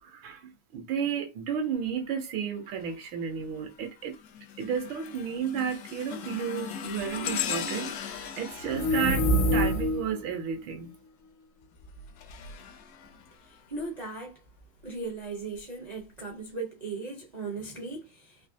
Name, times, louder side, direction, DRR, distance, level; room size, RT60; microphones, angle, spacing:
voice 1, 0.0-4.2 4.6-10.9, right 7 dB, 80° right, 1.5 m, -32 dB
sound 1, 2.7-3.1 3.6-10.4 11.6-13.8 14.5-14.6 15.5-15.6, left 7 dB, 70° left, 0.9 m, -39 dB
sound 2, 8.6-10.2, equal, 85° left, 1.6 m, -25 dB
voice 2, 13.4-14.4 14.8-18.4, right 3 dB, 55° right, 0.4 m, -38 dB
4.1 x 2.7 x 2.7 m
omnidirectional pair, 2.2 m